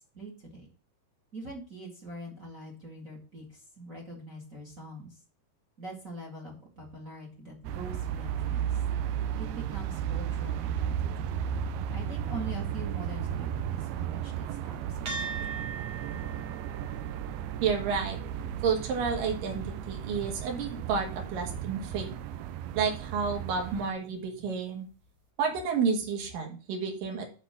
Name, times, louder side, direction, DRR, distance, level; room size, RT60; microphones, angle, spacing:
voice 1, 0.1-0.7 1.3-5.2 5.8-8.8 9.3-11.3 11.9-15.6, right 2 dB, 30° right, 1 dB, 1.7 m, -43 dB
sound 1, 7.6-23.9, right 9 dB, 85° right, 2.5 m, -34 dB
sound 2, 15.1-23.7, right 4 dB, 50° right, 2.5 m, -44 dB
voice 2, 17.6-18.2 18.6-22.1 22.7-24.9 25.4-27.3, right 5 dB, 65° right, 2 dB, 3.2 m, -30 dB
6.1 x 5.7 x 6.9 m, 0.36 s
omnidirectional pair, 4.4 m